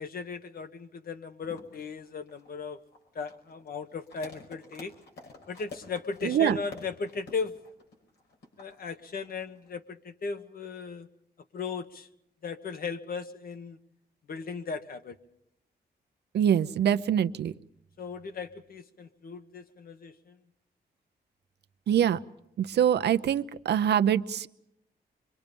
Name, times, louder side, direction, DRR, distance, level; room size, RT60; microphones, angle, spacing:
voice 1, 0.0-2.8 3.1-4.9 5.5-7.6 8.6-11.1 11.5-12.1 12.4-13.8 14.3-15.2 18.0-20.4, left 5 dB, 60° left, 8 dB, 1.5 m, -37 dB
sound 1, 1.4-9.8, left 3 dB, 90° left, 5.0 m, -48 dB
voice 2, 6.2-6.6 16.3-17.5 21.9-22.2 22.6-24.5, right 9 dB, 80° right, 11 dB, 0.8 m, -24 dB
25.5 x 24.0 x 5.4 m, 0.80 s
cardioid pair, 105°, 17 cm